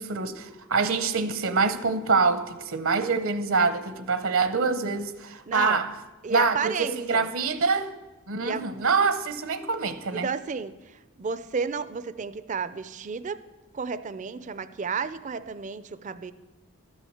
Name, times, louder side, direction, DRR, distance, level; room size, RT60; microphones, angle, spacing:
voice 1, 0.0-5.9 6.3-7.9 8.3-10.3, right 4 dB, 65° right, 0.7 m, -25 dB
voice 2, 5.5-5.8 6.2-7.3 8.4-8.7 10.1-13.4 13.7-16.3, right 5 dB, 35° right, 0.4 m, -32 dB
13.0 x 6.4 x 7.8 m
head